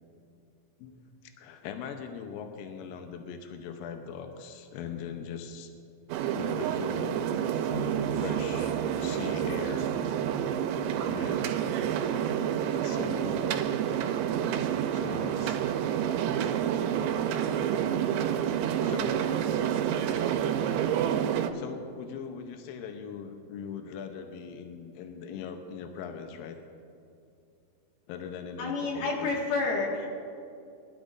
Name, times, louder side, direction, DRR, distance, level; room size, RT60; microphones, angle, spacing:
voice 1, 0.8-5.7 6.3-7.3 8.1-9.9 11.0-11.5 12.7-13.7 14.9-15.6 16.9-17.2 18.8-19.7 21.5-26.6 28.1-29.4, left 7 dB, 85° left, 5 dB, 2.1 m, -40 dB
sound 1, 6.1-21.5, right 9 dB, 85° right, 2.8 m, -29 dB
Bass guitar, 7.7-11.3, right 1 dB, 50° right, 2.3 m, -41 dB
voice 2, 28.6-30.1, left 3 dB, 65° left, -2 dB, 3.6 m, -29 dB
22.0 x 12.5 x 2.6 m, 2.5 s
omnidirectional pair, 5.2 m